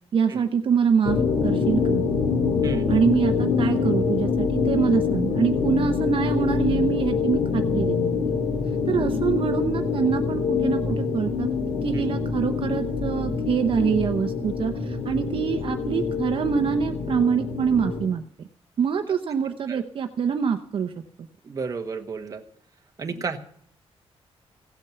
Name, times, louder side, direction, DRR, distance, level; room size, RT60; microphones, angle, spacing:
voice 1, 0.1-1.2 1.4-2.0 2.9-8.3 8.9-11.5 11.8-18.2 18.8-20.9, right 7 dB, 55° right, 6 dB, 0.8 m, -25 dB
sound 1, 1.0-18.1, left 5 dB, 90° left, 2.0 m, -25 dB
voice 2, 21.4-22.4 23.0-23.4, right 5 dB, 35° right, 5 dB, 1.2 m, -32 dB
16.5 x 8.9 x 6.9 m, 0.64 s
wide cardioid pair, 155°, 11 cm